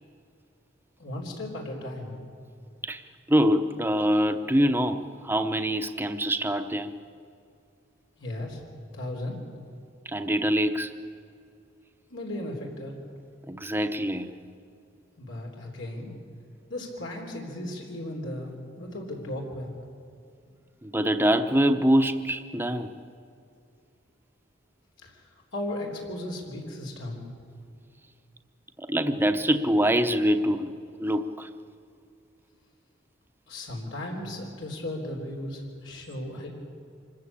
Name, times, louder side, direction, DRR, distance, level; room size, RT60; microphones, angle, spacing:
voice 1, 1.0-2.2 8.2-8.6 8.9-9.4 12.1-12.9 15.2-16.1 16.7-19.7 25.0-27.2 33.5-36.5, left 1 dB, 80° left, -1 dB, 3.8 m, -36 dB
voice 2, 3.3-6.9 10.1-10.9 13.5-14.3 20.8-22.9 28.8-30.7 31.0-31.5, equal, 10° right, 8 dB, 0.9 m, -24 dB
25.5 x 14.5 x 8.5 m, 2.5 s
head